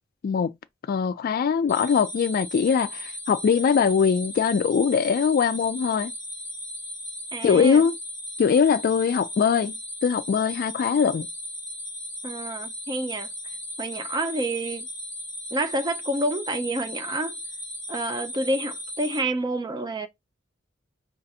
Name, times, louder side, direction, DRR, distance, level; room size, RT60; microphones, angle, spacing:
voice 1, 0.2-0.5 0.9-6.1 7.4-7.9 8.4-9.7 10.0-11.3, left 6 dB, 45° left, 0.3 m, -21 dB
sound 1, 1.7-19.2, left 1 dB, 10° left, 1.2 m, -36 dB
voice 2, 7.3-7.8 12.2-13.3 13.8-14.9 15.5-17.4 17.9-20.1, right 1 dB, 20° right, 0.4 m, -28 dB
5.1 x 2.4 x 2.7 m
head